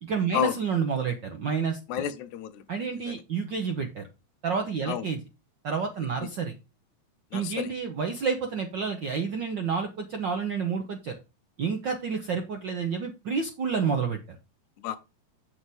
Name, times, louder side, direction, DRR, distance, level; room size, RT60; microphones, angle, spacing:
voice 1, 0.0-1.8 2.7-4.0 4.4-5.2 5.6-6.5 7.3-11.1 11.6-14.4, right 6 dB, 70° right, 1.1 m, -29 dB
voice 2, 1.9-2.6 3.1-3.2 4.9-5.0 7.3-7.7 14.8-15.0, left 10 dB, 85° left, 2.2 m, -30 dB
7.8 x 7.1 x 3.4 m
omnidirectional pair, 3.3 m